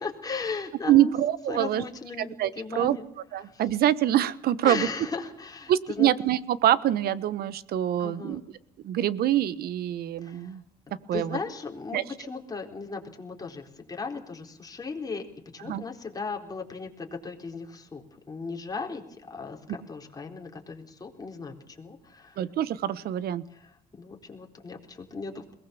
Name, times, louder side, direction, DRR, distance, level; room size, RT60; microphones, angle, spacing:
voice 1, 0.0-1.1 1.5-3.0 3.4-3.6 4.6-6.1 8.0-8.4 10.2-10.5 11.1-15.3 15.5-22.4 23.5-25.5, left 4 dB, 20° left, 1 dB, 4.0 m, -37 dB
voice 2, 0.9-1.8 2.2-3.0 3.3-4.9 5.7-8.4 8.8-10.6 11.1-11.4 11.9-12.0 15.6-15.8 22.4-23.4, right 12 dB, 65° right, 16 dB, 1.2 m, -25 dB
21.5 x 18.5 x 7.0 m, 0.72 s
cardioid pair, 110°, 17 cm